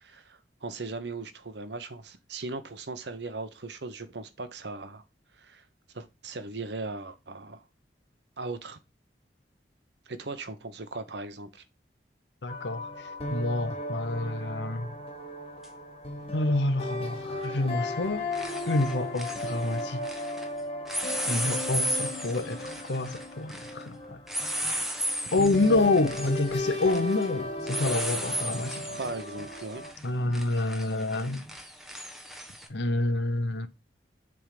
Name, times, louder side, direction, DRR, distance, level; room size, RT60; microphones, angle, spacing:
voice 1, 0.0-5.0 5.4-5.6 5.9-7.6 8.4-8.8 10.1-11.6 29.0-29.8, right 3 dB, 70° right, 1.0 m, -38 dB
voice 2, 12.4-12.9 13.3-15.0 16.3-18.3 18.7-20.1 21.3-24.2 25.3-29.0 30.0-31.5 32.7-33.7, left 2 dB, 75° left, 1.0 m, -28 dB
sound 1, 12.5-29.9, left 1 dB, 35° left, 1.8 m, -36 dB
sound 2, 15.6-15.7 17.5-17.8 18.0-20.5 20.9-32.7, equal, ahead, 1.2 m, -35 dB
7.7 x 3.7 x 5.1 m
head